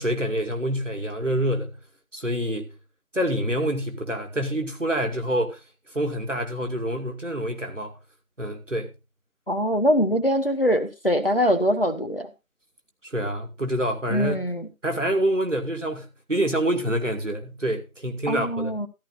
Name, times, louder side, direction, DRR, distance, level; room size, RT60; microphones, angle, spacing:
voice 1, 0.0-1.8 2.1-2.7 3.1-5.6 5.9-7.9 8.4-8.9 13.0-14.4 14.8-18.7, right 1 dB, 60° right, 2.6 m, -26 dB
voice 2, 9.5-12.3 14.1-14.7 18.3-18.9, equal, 40° left, 1.5 m, -23 dB
13.5 x 12.5 x 2.7 m
figure-of-eight pair, 180°, 42 cm